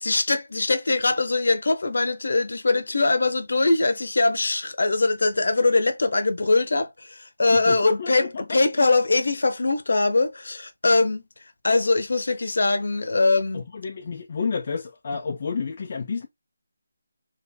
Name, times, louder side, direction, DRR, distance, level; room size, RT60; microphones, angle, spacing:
voice 1, 0.0-11.2 11.6-13.6, left 3 dB, 50° left, 0.8 m, -22 dB
voice 2, 7.5-8.8 13.5-16.3, left 5 dB, 25° left, 0.3 m, -31 dB
3.5 x 2.5 x 4.2 m
figure-of-eight pair, 180°, 0 cm